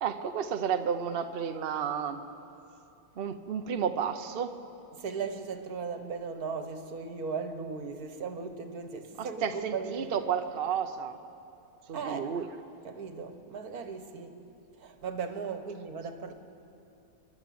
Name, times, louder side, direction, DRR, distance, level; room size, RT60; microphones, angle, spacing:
voice 1, 0.0-2.2 3.2-4.5 9.2-11.2 11.9-12.5, right 7 dB, 70° right, 7 dB, 0.5 m, -32 dB
voice 2, 4.9-10.1 11.9-12.4 12.8-14.5 14.8-16.3, right 5 dB, 50° right, 8 dB, 1.5 m, -37 dB
29.5 x 11.5 x 7.7 m, 2.7 s
omnidirectional pair, 2.2 m